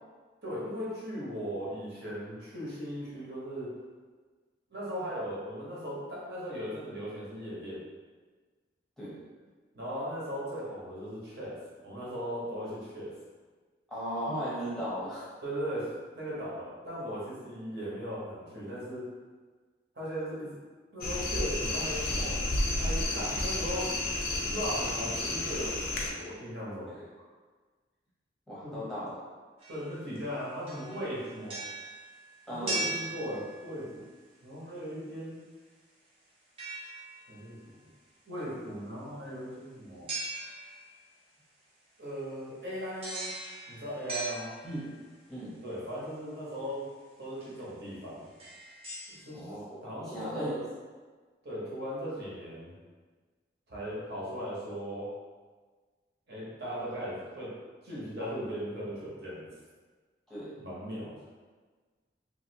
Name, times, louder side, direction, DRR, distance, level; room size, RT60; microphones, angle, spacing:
voice 1, 0.4-3.7 4.7-7.8 9.7-13.1 15.4-19.1 19.9-20.5 20.9-22.4 22.8-23.9 24.5-26.9 28.6-28.8 29.7-31.6 32.5-34.0 34.4-35.4 37.3-37.6 38.3-40.1 42.0-43.3 43.7-44.5 45.6-46.9 47.2-48.3 49.1-49.5 49.8-50.6 51.4-52.7 53.7-55.1 56.3-57.5 57.8-59.5 60.6-61.2, equal, 60° right, -7 dB, 1.0 m, -38 dB
voice 2, 13.9-15.3 26.9-27.1 28.5-29.2 32.5-32.9 44.6-44.9 45.3-45.6 49.3-49.8 50.1-50.6 60.3-60.5, equal, ahead, -10 dB, 0.7 m, -36 dB
sound 1, 21.0-26.1, left 2 dB, 55° left, 0.4 m, -31 dB
sound 2, 29.6-30.3 30.7-33.9 36.6-37.5 40.1-41.0 43.0-45.1 46.7-46.8 47.4-47.6 48.2-49.2, right 2 dB, 30° right, 0.6 m, -39 dB
3.0 x 2.7 x 2.8 m, 1.4 s
head